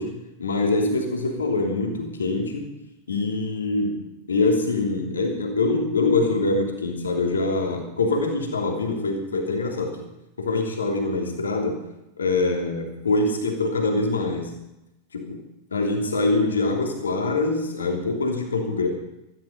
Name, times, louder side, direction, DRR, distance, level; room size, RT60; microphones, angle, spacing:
voice 1, 0.0-2.7 3.1-9.9 10.4-11.8 12.2-14.5 15.1-15.4 15.7-18.9, left 3 dB, 70° left, 3 dB, 3.1 m, -24 dB
15.5 x 14.0 x 5.3 m, 0.90 s
figure-of-eight pair, 90°, 0 cm